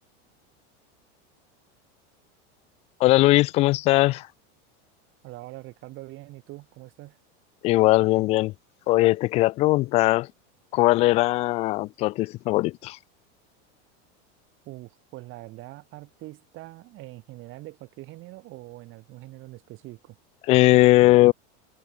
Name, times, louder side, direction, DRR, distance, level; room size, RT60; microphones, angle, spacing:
voice 1, 3.0-4.3 7.6-8.5 8.9-10.3 10.7-13.0 20.5-21.3, left 19 dB, 20° left, 0.3 m, -19 dB
voice 2, 5.2-7.2 14.7-20.2, right 18 dB, 35° right, 3.8 m, -43 dB
supercardioid pair, 170°, 34 cm